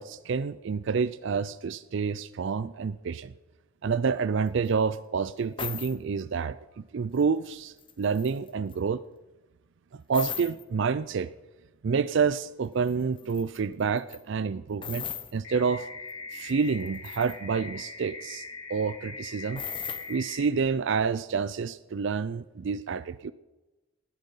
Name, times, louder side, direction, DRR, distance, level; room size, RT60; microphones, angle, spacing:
voice 1, 0.0-3.3 3.8-9.0 9.9-11.3 11.8-15.0 15.3-15.9 16.3-19.6 20.1-23.3, right 5 dB, 55° right, 16 dB, 0.4 m, -28 dB
sound 1, 4.7-4.8 5.6-5.9 7.1-7.5 7.8-8.7 10.1-10.6 12.9-13.0 13.2-13.6 14.0-14.2 14.8-15.3 16.1-16.2 16.5-17.4 19.6-20.1, left 8 dB, 25° left, 1.0 m, -37 dB
sound 2, 15.4-20.5, left 3 dB, 85° left, 4.5 m, -42 dB
19.0 x 9.0 x 5.6 m, 1.1 s
head